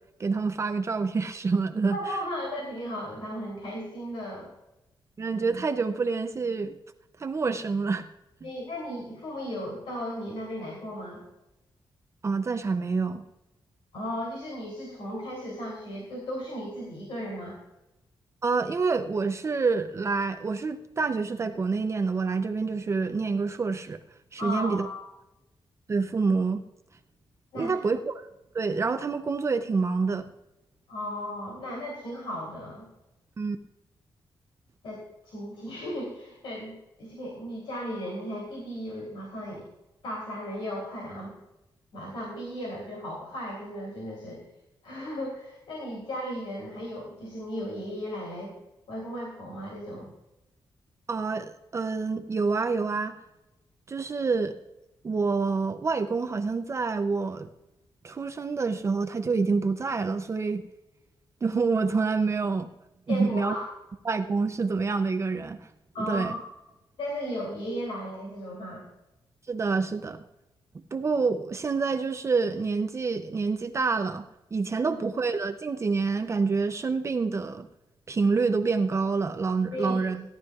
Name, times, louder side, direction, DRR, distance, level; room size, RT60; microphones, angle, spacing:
voice 1, 0.2-2.2 5.2-6.8 7.2-8.1 12.2-13.2 18.4-24.0 24.3-24.9 25.9-26.6 27.5-28.3 28.5-30.3 33.4-33.6 51.1-53.1 53.9-54.6 55.0-57.5 58.0-60.6 61.4-62.7 63.1-63.5 64.0-65.7 66.0-66.4 69.5-70.2 70.9-74.3 74.5-77.7 78.1-80.2, right 4 dB, 30° right, 7 dB, 0.5 m, -27 dB
voice 2, 1.9-4.5 8.4-11.2 13.9-17.6 24.4-25.0 27.5-27.8 30.9-32.9 34.8-39.6 40.0-41.3 41.9-44.4 44.8-48.5 48.9-50.1 63.1-63.7 65.9-66.5 67.0-68.8 74.9-75.0 79.7-80.0, equal, 80° left, -2 dB, 3.1 m, -35 dB
17.5 x 11.5 x 2.4 m, 0.94 s
wide cardioid pair, 140°, 9 cm